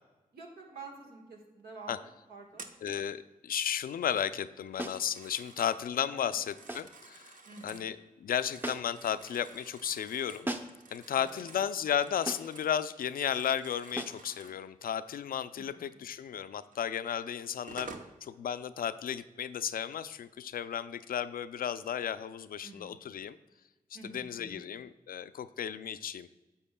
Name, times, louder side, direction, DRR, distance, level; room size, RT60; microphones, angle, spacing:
voice 1, 0.3-2.6 6.1-6.4 7.5-7.9 11.2-11.5 15.6-15.8 22.6-22.9 23.9-24.6, right 3 dB, 85° right, 0 dB, 1.4 m, -49 dB
Telephone, 2.5-3.2 4.7-5.8 6.3-7.9 8.3-12.8 13.1-14.6 16.7-16.8 17.4-18.1, right 3 dB, 55° right, 0.7 m, -51 dB
voice 2, 2.8-7.4 7.6-10.5 10.9-17.9 18.2-23.4 24.0-26.3, left 9 dB, 70° left, 14 dB, 0.4 m, -34 dB
sound 1, 4.8-5.1 6.7-7.0 8.6-9.1 10.4-10.9 12.3-12.6 14.0-14.3, right 1 dB, 15° right, 0.7 m, -38 dB
9.9 x 7.0 x 2.2 m, 1.2 s
cardioid pair, 45°, 16 cm